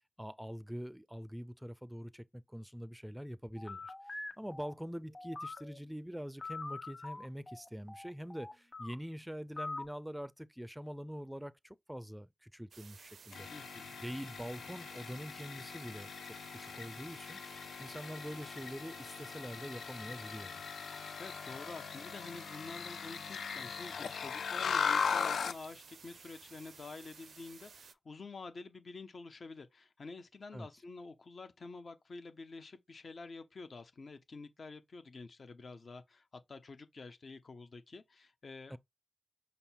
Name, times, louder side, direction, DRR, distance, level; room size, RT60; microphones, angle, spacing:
voice 1, 0.2-13.5 14.0-17.4 17.8-20.6 30.5-30.7 38.7-38.8, equal, 5° right, 0.4 m, -44 dB
sound 1, 3.6-5.8 6.4-8.9 9.6-9.9, left 3 dB, 35° left, 1.3 m, -44 dB
sound 2, 12.7-27.9, right 6 dB, 75° right, 0.4 m, -56 dB
sound 3, 13.3-25.6, left 6 dB, 80° left, 0.4 m, -39 dB
voice 2, 13.5-14.0 21.2-38.8, left 3 dB, 60° left, 0.7 m, -49 dB
5.3 x 2.0 x 4.4 m
cardioid pair, 45°, 0 cm